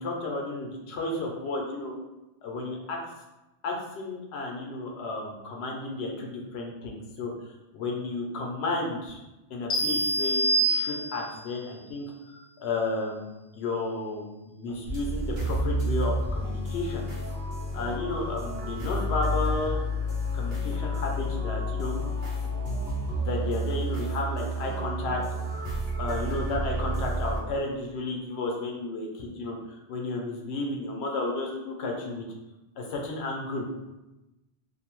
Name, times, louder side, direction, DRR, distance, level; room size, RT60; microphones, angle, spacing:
voice 1, 0.0-1.9 2.4-3.0 3.6-7.3 7.7-9.2 9.5-17.5 17.7-19.8 20.3-22.0 23.2-25.2 25.5-25.7 26.0-32.3 32.8-33.6, left 2 dB, 80° left, 0 dB, 0.8 m, -33 dB
sound 1, 9.7-11.4, right 2 dB, 40° left, 0.4 m, -26 dB
sound 2, 14.9-27.4, equal, 70° right, 0.9 m, -30 dB
2.6 x 2.0 x 3.0 m, 1.0 s
omnidirectional pair, 1.1 m